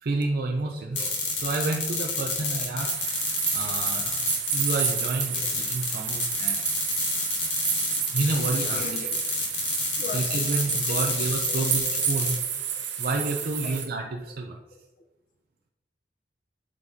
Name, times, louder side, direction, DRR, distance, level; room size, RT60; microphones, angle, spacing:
voice 1, 0.0-1.1 1.4-2.9 3.5-4.2 4.5-6.7 8.1-8.8 9.7-9.8 10.1-12.4 13.0-14.6, right 3 dB, 55° right, 1 dB, 0.5 m, -29 dB
voice 2, 0.7-1.2 5.3-5.5 8.7-9.2 10.0-10.2 10.9-11.2 11.5-12.3 12.7-12.8 13.6-13.8, left 2 dB, 50° left, 3 dB, 0.7 m, -39 dB
sound 1, 1.0-12.4, left 4 dB, 85° left, 2.1 m, -29 dB
sound 2, 2.8-13.9, right 8 dB, 80° right, 0.9 m, -30 dB
8.0 x 5.3 x 2.8 m, 1.0 s
head